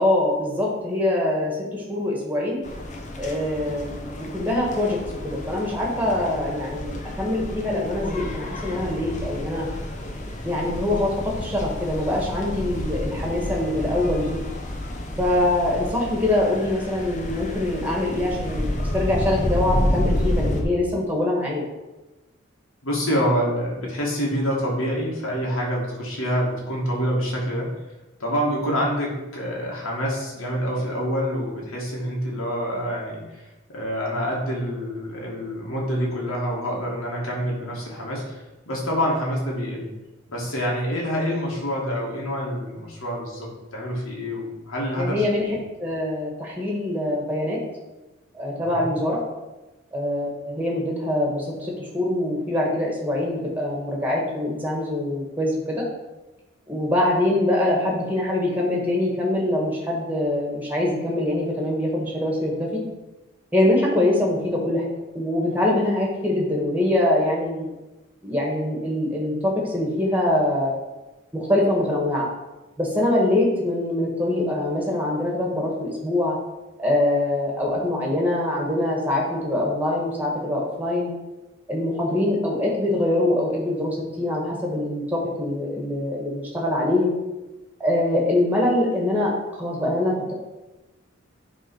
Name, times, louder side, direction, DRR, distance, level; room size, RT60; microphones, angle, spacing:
voice 1, 0.0-2.6 3.2-5.0 5.2-9.7 10.4-14.4 15.2-21.6 45.0-45.4 45.8-47.6 48.3-49.2 49.9-55.8 56.7-62.8 63.5-64.8 65.1-67.7 68.2-70.7 71.3-72.3 72.8-76.4 76.8-81.1 81.7-87.1 87.8-89.3 89.6-90.3, left 1 dB, 10° right, -2 dB, 1.5 m, -24 dB
sound 1, 2.6-20.6, left 1 dB, 35° left, 0.8 m, -30 dB
voice 2, 22.8-27.8 28.2-39.9 40.3-45.2 48.6-48.9, equal, 90° left, -3 dB, 2.1 m, -27 dB
7.4 x 3.7 x 5.5 m, 1.1 s
head